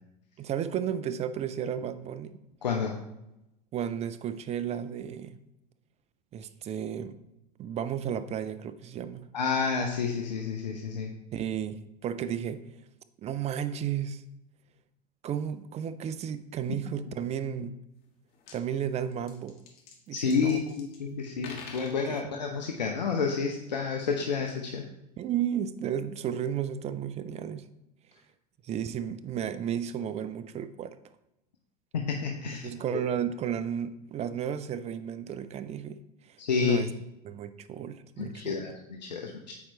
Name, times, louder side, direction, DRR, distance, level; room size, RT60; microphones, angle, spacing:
voice 1, 0.4-2.4 3.7-5.4 6.3-7.2 7.6-9.3 11.3-12.7 13.2-14.2 15.2-17.8 18.5-19.6 20.1-20.6 21.1-21.2 22.0-22.4 25.2-27.7 28.6-31.0 32.6-36.1 36.6-36.9 37.2-38.7, right 9 dB, 30° right, 0.5 m, -33 dB
voice 2, 2.6-2.9 9.3-11.1 20.1-24.9 31.9-32.7 36.4-36.8 38.2-39.5, left 5 dB, 85° left, 0.7 m, -30 dB
sound 1, 18.0-18.1 18.3-18.6 19.1-21.0 21.3-22.1, left 5 dB, 45° left, 1.6 m, -46 dB
8.5 x 4.4 x 3.1 m
hypercardioid pair, 80°, 21 cm